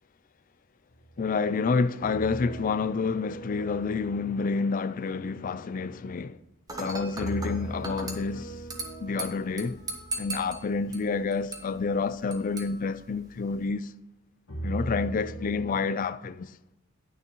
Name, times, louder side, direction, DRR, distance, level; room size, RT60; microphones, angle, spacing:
sound 1, 0.9-1.6 2.0-6.5 7.2-12.8 14.5-15.7, right 1 dB, 80° left, 1.5 m, -41 dB
voice 1, 1.2-6.4 6.8-8.5 9.0-9.8 10.2-13.9 14.6-16.5, left 4 dB, 40° left, 0.4 m, -29 dB
Dishes pots and pans / Glass, 6.7-13.7, right 2 dB, 20° right, 1.1 m, -40 dB
9.7 x 9.2 x 3.0 m
head